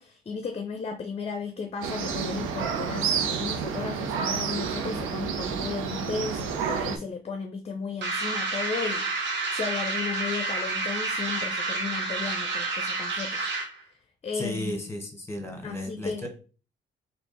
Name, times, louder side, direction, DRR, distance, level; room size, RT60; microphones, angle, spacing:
voice 1, 0.0-13.5 14.2-14.8 15.6-16.3, left 5 dB, 30° left, 0.5 m, -35 dB
sound 1, 1.8-7.0, right 6 dB, 85° right, 0.7 m, -29 dB
sound 2, 8.0-13.8, right 3 dB, 60° right, 1.3 m, -29 dB
voice 2, 14.3-16.3, left 1 dB, 10° left, 1.3 m, -34 dB
3.4 x 2.9 x 4.0 m
cardioid pair, 90°, 20 cm